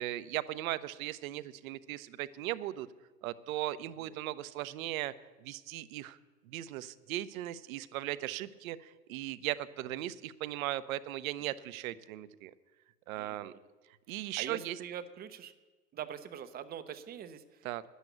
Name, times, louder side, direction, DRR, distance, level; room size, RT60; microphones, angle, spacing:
voice 1, 0.0-2.9 3.2-5.1 5.4-6.2 6.5-12.5 13.1-13.5 14.1-14.8 17.6-17.8, right 14 dB, 60° right, 15 dB, 0.8 m, -38 dB
voice 2, 13.1-13.6 14.4-15.5 15.9-17.9, right 9 dB, 20° right, 11 dB, 0.6 m, -44 dB
10.5 x 8.2 x 9.1 m, 1.3 s
hypercardioid pair, 105°, 48 cm